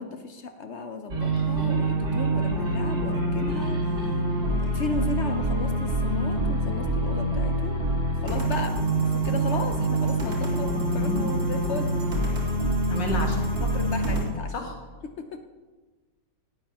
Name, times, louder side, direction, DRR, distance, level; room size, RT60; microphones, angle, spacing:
voice 1, 0.0-4.0 4.6-7.9 8.2-11.9 13.6-14.5 15.2-15.4, left 4 dB, 60° left, 7 dB, 0.7 m, -35 dB
sound 1, 1.1-14.2, right 2 dB, 60° right, 3.1 m, -25 dB
voice 2, 12.9-13.4 14.5-14.7, left 2 dB, 85° left, 1 dB, 2.5 m, -29 dB
17.5 x 12.0 x 3.0 m, 1.4 s
omnidirectional pair, 1.9 m